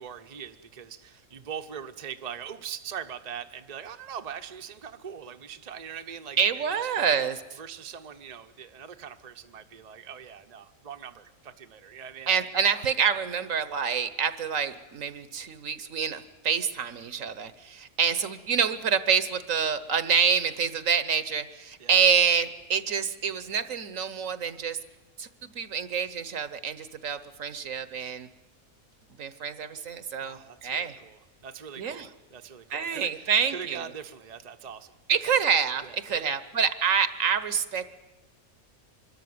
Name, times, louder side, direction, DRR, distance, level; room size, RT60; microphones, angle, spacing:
voice 1, 0.0-7.2 7.6-12.8 21.8-22.1 30.2-34.9 35.2-35.4 35.8-36.4, right 8 dB, 35° right, 7 dB, 0.9 m, -42 dB
voice 2, 6.4-7.4 12.3-24.8 25.2-28.3 29.2-31.0 31.8-32.1 32.7-33.9 35.1-37.9, right 7 dB, 70° right, 13 dB, 1.4 m, -27 dB
25.0 x 13.5 x 9.5 m, 1.2 s
omnidirectional pair, 1.5 m